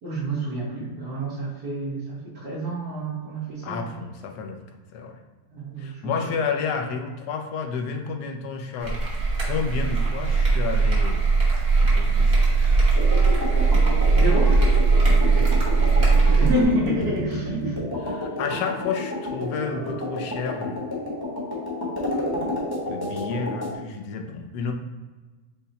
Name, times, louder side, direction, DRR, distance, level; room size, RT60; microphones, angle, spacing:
voice 1, 0.0-3.9 5.5-6.3 14.1-14.5 16.4-17.8, right 1 dB, 65° right, -10 dB, 1.9 m, -28 dB
voice 2, 3.6-4.6 4.9-5.2 5.8-11.2 11.9-12.3 15.2-16.1 18.0-20.9 22.9-24.7, left 5 dB, 70° left, 4 dB, 1.2 m, -31 dB
sound 1, 8.8-16.6, right 4 dB, 35° right, 1.4 m, -19 dB
sound 2, 13.0-23.8, left 1 dB, 15° left, 1.0 m, -30 dB
5.6 x 2.2 x 4.0 m, 1.2 s
omnidirectional pair, 1.9 m